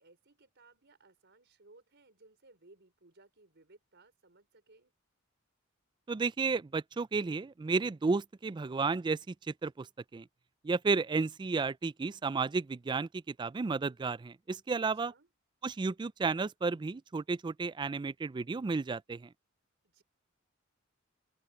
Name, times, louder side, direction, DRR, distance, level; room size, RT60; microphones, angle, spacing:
voice 1, 0.0-4.9 14.8-15.3 19.8-20.0, right 2 dB, 60° right, 4.8 m, -62 dB
voice 2, 6.1-9.3 9.6-9.9 10.1-10.3 10.6-15.1 15.6-19.3, right 4 dB, 25° right, 0.3 m, -32 dB
open air
head